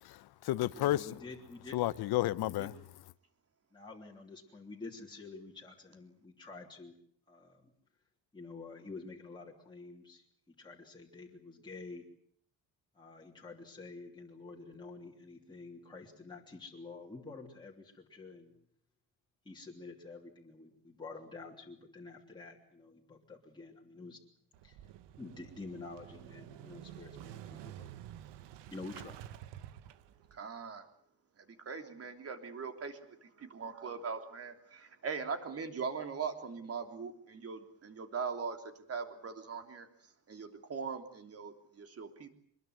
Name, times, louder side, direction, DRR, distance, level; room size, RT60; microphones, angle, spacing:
voice 1, 0.0-1.2 1.7-2.7, left 15 dB, 65° left, 0.9 m, -32 dB
voice 2, 0.7-1.8 2.4-2.7 3.7-7.0 7.3-7.7 8.3-12.1 12.9-18.5 19.4-24.2 24.6-24.8 25.2-27.9 28.7-29.2, left 3 dB, 10° left, 3.2 m, -49 dB
Motorcycle / Engine starting, 24.5-30.4, right 12 dB, 80° right, 1.5 m, -50 dB
voice 3, 30.3-30.8 31.6-38.6 38.9-39.9 40.3-42.3, right 5 dB, 35° right, 3.3 m, -40 dB
24.5 x 21.5 x 8.0 m
cardioid pair, 155°, 41 cm